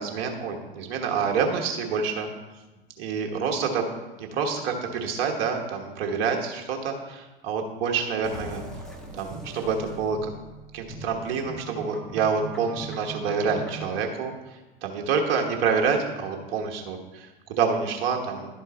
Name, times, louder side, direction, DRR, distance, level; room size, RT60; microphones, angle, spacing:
voice 1, 0.0-2.3 3.0-3.8 4.2-8.6 9.1-10.3 10.7-18.5, right 5 dB, 40° right, 2 dB, 1.3 m, -27 dB
sound 1, 8.2-14.0, right 2 dB, ahead, 1.0 m, -40 dB
11.5 x 4.4 x 4.3 m, 1.2 s
figure-of-eight pair, 85°, 29 cm